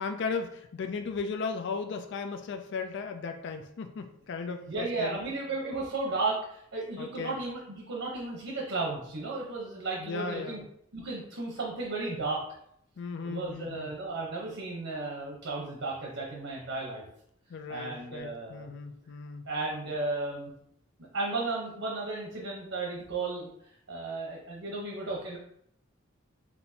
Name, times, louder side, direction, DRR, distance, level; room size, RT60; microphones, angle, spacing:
voice 1, 0.0-5.2 7.0-7.4 10.0-10.6 13.0-13.9 17.5-19.5, left 4 dB, 60° left, 6 dB, 0.4 m, -36 dB
voice 2, 4.7-10.6 10.9-12.4 13.2-17.0 17.7-18.6 19.5-20.5 21.1-23.5 23.9-25.4, right 3 dB, 75° right, -2 dB, 1.0 m, -34 dB
5.9 x 2.6 x 2.8 m, 0.70 s
head